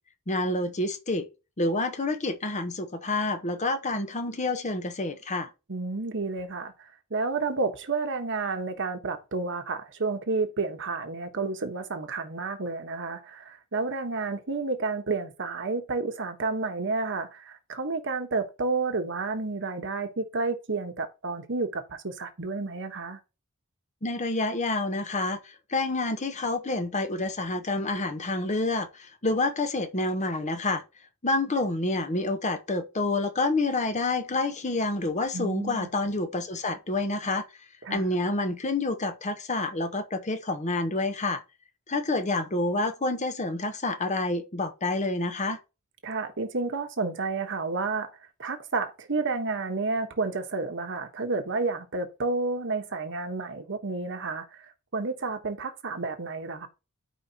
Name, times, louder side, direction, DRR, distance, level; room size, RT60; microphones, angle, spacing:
voice 1, 0.3-1.3 1.6-5.5 24.0-30.8 31.2-37.5 37.9-41.4 41.9-45.6, left 2 dB, 35° left, 1.0 m, -28 dB
voice 2, 5.7-23.2 35.3-35.9 37.8-38.0 46.0-48.1 48.4-56.7, right 3 dB, 60° right, 1.3 m, -31 dB
12.5 x 5.0 x 2.9 m
head